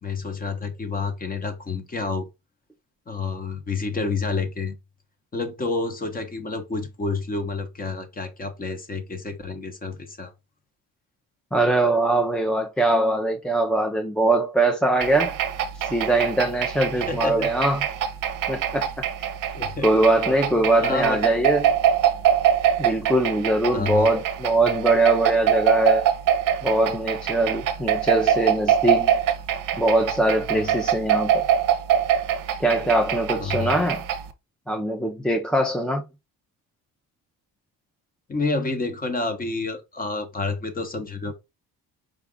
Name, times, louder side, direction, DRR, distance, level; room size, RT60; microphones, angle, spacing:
voice 1, 0.0-2.3 3.1-4.8 5.3-10.3 17.1-17.5 19.5-19.9 20.8-21.2 23.7-24.1 30.5-30.8 33.4-33.8 38.3-41.3, left 3 dB, 25° left, 0.8 m, -29 dB
voice 2, 11.5-15.3 15.8-17.8 18.5-18.9 19.2-19.3 19.8-21.7 22.8-26.1 26.6-29.1 29.7-31.3 32.6-34.0 34.7-36.0, right 1 dB, ahead, 0.4 m, -22 dB
sound 1, 15.0-34.3, right 9 dB, 60° right, 0.6 m, -24 dB
4.9 x 2.3 x 3.5 m
cardioid pair, 140°, 38 cm